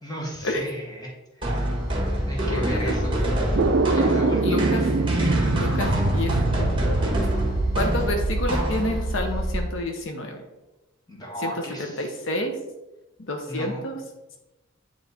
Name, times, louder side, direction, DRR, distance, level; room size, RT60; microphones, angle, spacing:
voice 1, 0.0-1.7 2.3-3.1 3.9-4.7 11.1-12.1 13.5-13.9, equal, 20° left, -3 dB, 1.6 m, -34 dB
sound 1, 1.4-9.2, right 1 dB, 25° right, 1.4 m, -27 dB
sound 2, 1.7-9.6, equal, ahead, 1.3 m, -30 dB
voice 2, 2.5-2.9 4.4-4.8 5.5-6.9 7.8-10.4 11.4-11.5 11.8-12.6 13.3-13.9, left 1 dB, 70° left, 3 dB, 0.8 m, -29 dB
sound 3, 3.5-9.6, right 3 dB, 65° right, 0.4 m, -25 dB
9.1 x 3.2 x 4.1 m, 1.0 s
head